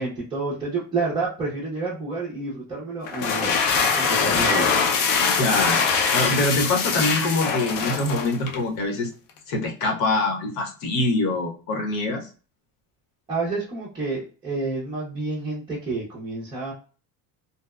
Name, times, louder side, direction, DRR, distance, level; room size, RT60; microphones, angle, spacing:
voice 1, 0.0-4.7 13.3-16.7, right 3 dB, 10° right, -8 dB, 0.4 m, -29 dB
sound 1, 3.0-8.6, left 5 dB, 50° left, 0.5 m, -23 dB
voice 2, 5.4-5.8 6.1-9.1 9.5-12.2, left 2 dB, 75° left, 2 dB, 1.0 m, -24 dB
2.8 x 2.0 x 2.2 m, 0.37 s
cardioid pair, 155°, 43 cm